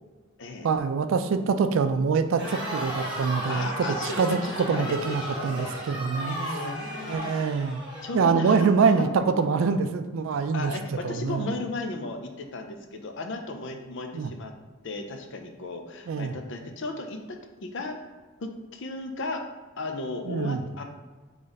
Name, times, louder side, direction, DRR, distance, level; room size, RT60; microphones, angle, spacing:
voice 1, 0.6-6.4 7.1-7.8 8.1-10.8 11.0-11.5 14.1-14.3 16.1-16.4 20.3-20.6, right 5 dB, 65° right, 9 dB, 0.3 m, -25 dB
Crowd, 2.3-8.5, right 1 dB, 20° right, 1.3 m, -35 dB
voice 2, 3.5-7.3 8.0-9.2 10.5-14.5 14.8-18.0 18.4-19.4 19.8-20.8, left 2 dB, 60° left, 4 dB, 0.5 m, -35 dB
3.7 x 3.2 x 4.0 m, 1.3 s
head